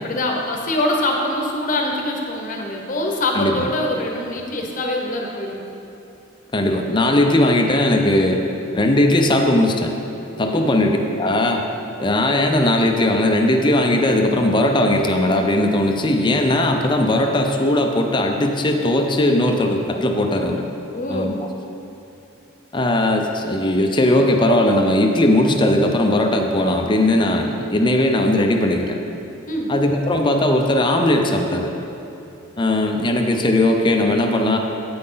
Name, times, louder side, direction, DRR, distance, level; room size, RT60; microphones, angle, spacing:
voice 1, 0.0-5.6 10.4-10.7 20.9-21.4 29.5-29.7, left 1 dB, 40° left, 1 dB, 1.0 m, -24 dB
voice 2, 3.3-3.7 6.5-8.4 8.7-9.9 10.4-11.6 12.0-20.7 21.1-21.3 22.7-29.0 29.7-31.7 32.6-34.6, left 1 dB, 25° left, 3 dB, 0.6 m, -18 dB
8.6 x 8.0 x 3.9 m, 2.9 s
head